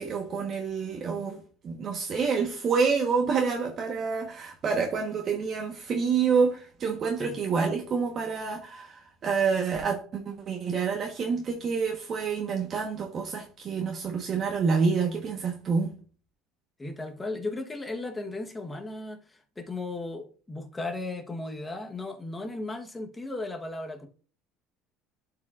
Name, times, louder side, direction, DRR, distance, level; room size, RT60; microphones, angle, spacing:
voice 1, 0.0-15.9, right 5 dB, 40° right, 1.2 m, -28 dB
voice 2, 16.8-24.1, left 2 dB, 15° left, 1.1 m, -36 dB
11.5 x 4.9 x 2.5 m
cardioid pair, 125°, 0 cm